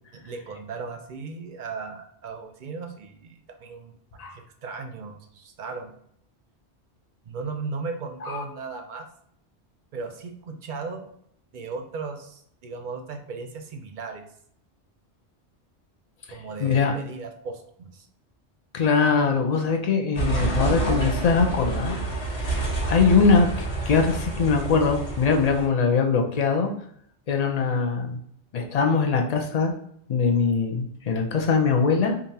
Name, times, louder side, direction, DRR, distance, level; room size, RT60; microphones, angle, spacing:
voice 1, 0.1-5.9 7.3-9.1 9.9-11.1 11.5-14.2 16.3-18.1, right 4 dB, 55° right, 5 dB, 0.6 m, -36 dB
voice 2, 16.6-16.9 18.7-21.9 22.3-22.6 22.9-26.7 27.3-28.2 28.5-29.7 30.1-32.2, left 5 dB, 50° left, 3 dB, 0.5 m, -22 dB
sound 1, 20.1-25.6, right 3 dB, 65° left, 1.5 m, -28 dB
5.2 x 2.4 x 2.8 m, 0.68 s
omnidirectional pair, 1.2 m